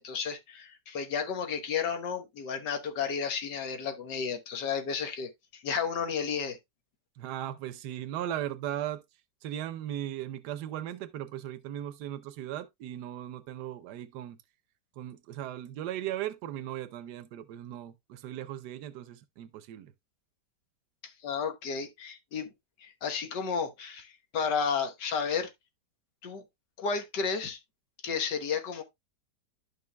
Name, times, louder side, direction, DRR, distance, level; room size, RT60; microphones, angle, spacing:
voice 1, 0.0-6.6 21.0-22.5 22.8-25.5 26.2-26.4 26.8-27.6 28.0-28.8, left 6 dB, 90° left, 1.8 m, -32 dB
voice 2, 7.2-9.0 9.4-14.4 15.0-19.9, right 12 dB, 75° right, 1.3 m, -37 dB
11.5 x 5.4 x 2.2 m
omnidirectional pair, 1.8 m